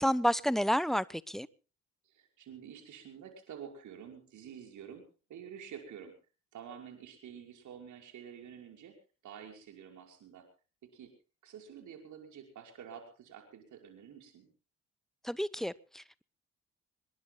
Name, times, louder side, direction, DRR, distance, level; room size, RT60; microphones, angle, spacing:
voice 1, 0.0-1.5 15.2-16.2, equal, ahead, 0.9 m, -30 dB
voice 2, 2.1-6.1 6.5-9.0 9.2-10.4 10.9-11.1 11.4-14.5, right 8 dB, 55° right, 5.6 m, -49 dB
26.5 x 21.5 x 2.3 m
figure-of-eight pair, 50°, 36 cm